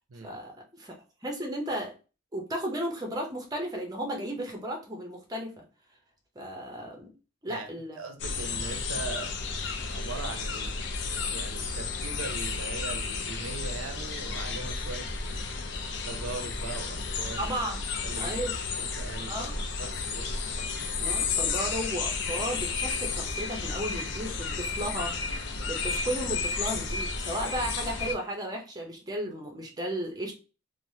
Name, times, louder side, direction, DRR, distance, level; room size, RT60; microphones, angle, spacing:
voice 1, 0.2-0.9 1.2-1.9 2.3-5.6 6.4-7.1 7.4-8.0 17.4-17.8 18.1-18.5 19.3-19.6 21.0-30.3, right 1 dB, 20° right, 1 dB, 0.6 m, -34 dB
voice 2, 8.0-9.3 9.9-10.7 11.0-15.1 16.0-17.4 18.0-18.3 18.8-19.5 19.8-20.3, right 3 dB, 90° right, 6 dB, 0.5 m, -40 dB
sound 1, 8.2-28.1, left 4 dB, 55° left, 0.4 m, -32 dB
3.2 x 2.0 x 2.7 m, 0.33 s
head